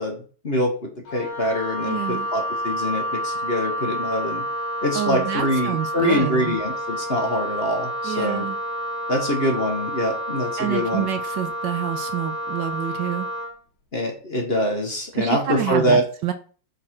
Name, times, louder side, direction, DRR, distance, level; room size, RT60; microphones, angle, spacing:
voice 1, 0.0-4.4 4.8-8.5 9.1-11.1 13.9-16.0, equal, 35° left, 1.2 m, -24 dB
Wind instrument woodwind instrument, 1.1-13.5, equal, 75° left, 2.1 m, -29 dB
voice 2, 1.8-2.3 4.9-6.6 8.0-8.6 10.6-13.3 15.1-16.3, right 10 dB, 70° right, 1.2 m, -28 dB
8.6 x 4.1 x 4.4 m
omnidirectional pair, 2.2 m